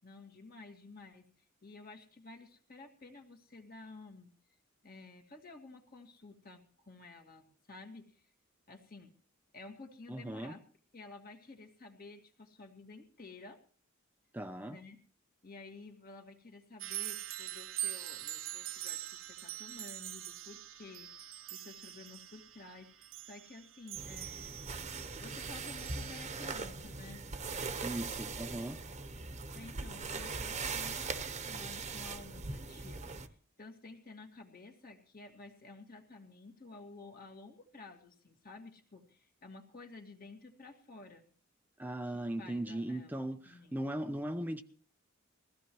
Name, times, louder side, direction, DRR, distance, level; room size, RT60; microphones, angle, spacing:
voice 1, 0.0-1.2 1.6-4.3 4.8-8.2 8.7-9.1 9.5-10.6 10.9-13.6 14.7-15.0 15.4-24.7 25.2-27.2 29.2-33.3 33.6-41.2 42.1-43.7, left 3 dB, 45° left, 2.2 m, -52 dB
voice 2, 10.1-10.5 14.3-14.8 27.8-28.8 41.8-44.6, right 1 dB, 10° right, 0.6 m, -38 dB
sound 1, 16.8-26.2, right 13 dB, 65° right, 0.8 m, -44 dB
sound 2, 23.9-33.3, right 4 dB, 35° right, 1.0 m, -40 dB
21.5 x 15.5 x 3.1 m
head